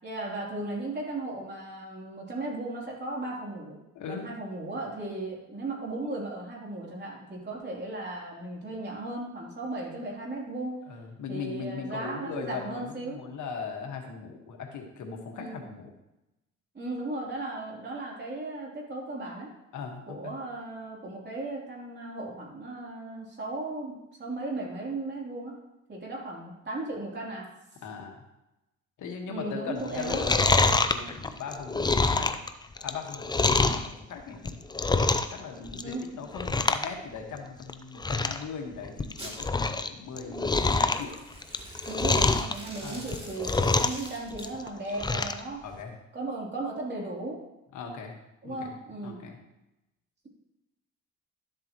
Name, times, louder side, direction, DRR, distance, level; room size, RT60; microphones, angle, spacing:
voice 1, 0.0-3.8 4.1-10.8 11.3-13.2 15.4-15.6 16.7-19.5 20.1-25.6 25.9-27.5 29.3-30.2 35.8-36.1 41.9-45.6 46.1-47.4 48.4-49.2, right 2 dB, 35° right, -3 dB, 3.3 m, -36 dB
voice 2, 3.9-4.3 10.9-15.9 19.7-20.3 27.8-28.2 29.0-32.4 32.8-34.6 35.3-41.2 42.8-43.1 45.6-46.0 47.7-48.1 48.4-48.7 49.0-49.4, left 5 dB, 75° left, 2 dB, 1.6 m, -39 dB
Chewing mastication, 29.9-33.9 34.3-35.4 35.7-36.0 36.3-36.9 37.2-37.3 37.7-37.8 38.0-38.4 38.8-39.9 40.2-42.5 43.0-44.1 44.3-45.4 45.8-45.9, left 3 dB, 15° left, 0.5 m, -25 dB
Domestic sounds home sounds, 39.2-39.4 40.4-44.5, right 1 dB, 20° right, 2.7 m, -45 dB
12.0 x 7.5 x 3.1 m, 0.94 s
cardioid pair, 90°, 30 cm